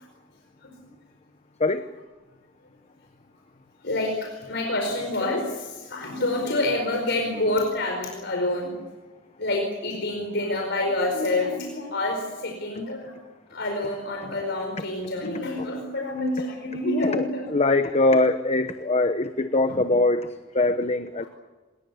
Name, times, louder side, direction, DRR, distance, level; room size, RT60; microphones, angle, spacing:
voice 1, 3.8-8.7 9.4-13.1 13.5-17.5 19.7-19.8, left 2 dB, 60° left, 2 dB, 4.9 m, -27 dB
voice 2, 16.9-21.2, left 2 dB, 35° left, 10 dB, 1.0 m, -23 dB
27.0 x 21.0 x 7.1 m, 1.2 s
head